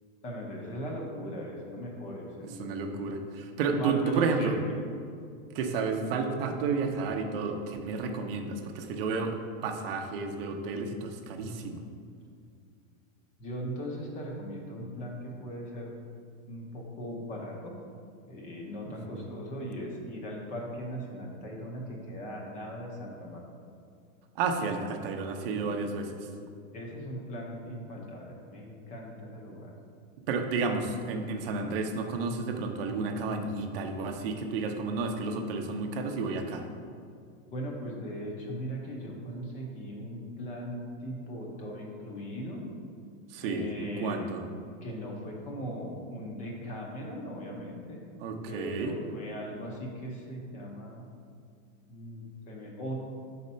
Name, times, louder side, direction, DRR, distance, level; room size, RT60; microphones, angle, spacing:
voice 1, 0.2-3.0 3.7-4.5 13.4-16.0 16.5-17.8 18.3-23.4 26.7-29.7 37.5-42.6 43.4-44.2 44.8-48.0 48.5-51.1 51.9-52.9, equal, 20° left, -1 dB, 0.6 m, -39 dB
voice 2, 2.4-4.6 5.5-11.8 18.9-19.3 24.4-26.3 30.3-36.7 43.3-44.4 48.2-48.9, right 4 dB, 45° right, 5 dB, 0.7 m, -31 dB
5.2 x 4.2 x 5.4 m, 2.3 s
supercardioid pair, 160°, 41 cm